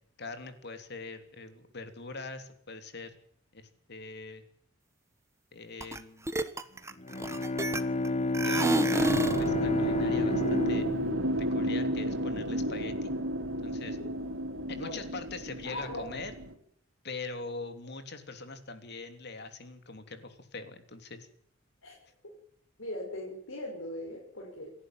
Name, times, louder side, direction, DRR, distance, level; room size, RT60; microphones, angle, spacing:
voice 1, 0.2-3.1 3.5-4.4 5.5-6.4 8.4-10.9 11.4-13.1 13.6-14.0 14.7-16.3 17.0-21.3, left 3 dB, 55° left, 8 dB, 3.2 m, -42 dB
sound 1, 5.8-6.0 6.3-8.1 8.3-9.5, right 1 dB, 15° right, 1.3 m, -29 dB
Bowed string instrument, 6.9-12.5, left 2 dB, 35° left, 1.1 m, -31 dB
sound 2, 9.0-16.5, equal, 85° right, 3.1 m, -32 dB
voice 2, 15.6-16.0 21.8-22.0 22.8-24.7, left 1 dB, 75° left, -2 dB, 6.0 m, -39 dB
27.5 x 11.5 x 9.2 m, 0.66 s
head